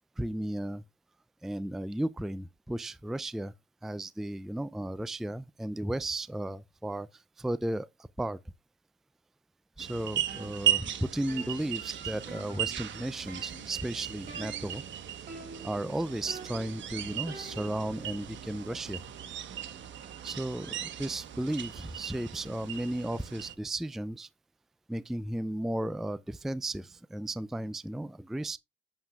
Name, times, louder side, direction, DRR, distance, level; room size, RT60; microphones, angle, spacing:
voice 1, 0.2-0.8 1.4-3.5 3.8-8.4 9.8-14.8 15.6-19.0 20.2-24.3 24.9-28.6, right 1 dB, ahead, 0.3 m, -34 dB
sound 1, 9.8-23.5, right 11 dB, 70° right, 1.2 m, -37 dB
sound 2, 10.3-11.0 11.3-13.0 13.3-13.8 14.3-14.9 15.3-15.9 16.3-18.0, right 3 dB, 50° right, 3.3 m, -48 dB
8.6 x 7.5 x 2.3 m
cardioid pair, 90°, 20 cm